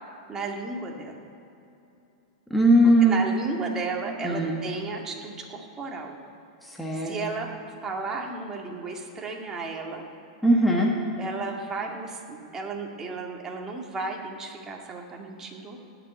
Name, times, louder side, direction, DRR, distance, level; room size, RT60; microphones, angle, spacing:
voice 1, 0.3-1.3 3.0-6.2 6.9-7.5 7.8-10.1 11.2-15.8, right 3 dB, 20° right, 0 dB, 2.1 m, -34 dB
voice 2, 2.5-3.2 4.2-4.6 6.6-7.2 10.4-10.9, right 1 dB, ahead, -2 dB, 1.7 m, -20 dB
17.5 x 6.9 x 9.4 m, 2.8 s
hypercardioid pair, 135°, 3 cm